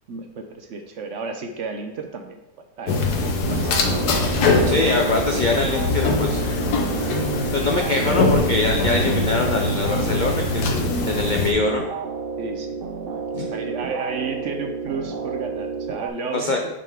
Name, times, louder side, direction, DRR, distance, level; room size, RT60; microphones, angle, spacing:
voice 1, 0.1-2.4 2.8-4.0 9.0-9.2 12.4-12.8 13.0-13.2 13.5-16.7, right 4 dB, 65° right, 5 dB, 0.9 m, -32 dB
sound 1, 2.9-11.5, left 3 dB, 90° left, 1.4 m, -22 dB
sound 2, 3.5-16.1, right 5 dB, 85° right, 0.4 m, -31 dB
voice 2, 4.7-6.4 6.8-7.1 7.5-11.8 13.3-13.5 16.3-16.6, left 3 dB, 65° left, 2 dB, 0.4 m, -23 dB
6.2 x 5.2 x 3.5 m, 0.93 s
omnidirectional pair, 1.6 m